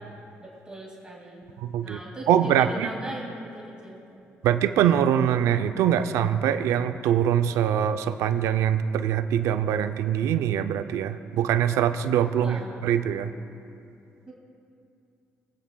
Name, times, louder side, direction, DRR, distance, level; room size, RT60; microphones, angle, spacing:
voice 1, 0.4-4.2 12.4-12.8 14.3-14.4, right 1 dB, 15° right, -3 dB, 2.1 m, -39 dB
voice 2, 1.6-2.0 2.3-2.9 4.4-13.3, right 9 dB, 85° right, 10 dB, 0.4 m, -23 dB
21.5 x 8.7 x 2.2 m, 2.6 s
cardioid pair, 80°, 5 cm